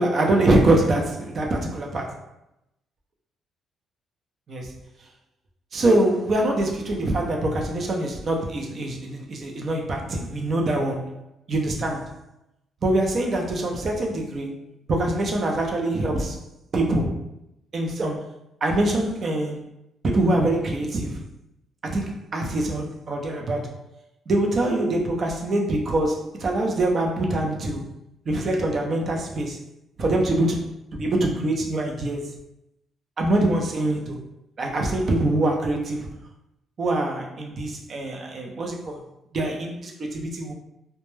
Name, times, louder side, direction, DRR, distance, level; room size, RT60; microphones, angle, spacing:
voice 1, 0.0-2.2 4.5-4.7 5.7-11.2 11.5-12.2 12.8-14.5 14.9-16.4 16.7-17.2 17.7-18.3 18.6-19.6 20.0-21.2 21.8-23.8 24.3-27.8 28.3-29.6 30.0-32.3 33.2-34.2 34.6-36.1 36.8-39.0 39.3-40.5, right 1 dB, 50° right, 0.6 m, -24 dB
2.1 x 2.1 x 3.1 m
cardioid pair, 90°, 0 cm